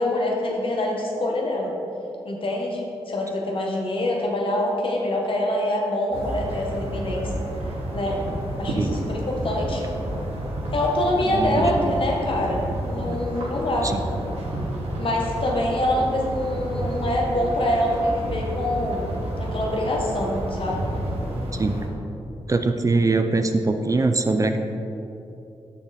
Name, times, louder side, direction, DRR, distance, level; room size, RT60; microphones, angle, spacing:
voice 1, 0.0-1.7 2.2-7.4 7.9-8.2 8.6-9.8 10.7-13.9 15.0-19.1 19.4-20.8, left 1 dB, 60° left, -1 dB, 1.4 m, -25 dB
sound 1, 6.1-21.9, right 1 dB, 75° right, 1.3 m, -30 dB
voice 2, 22.5-24.6, right 3 dB, 35° right, 7 dB, 0.5 m, -22 dB
6.5 x 5.8 x 4.2 m, 2.8 s
cardioid pair, 55°, 10 cm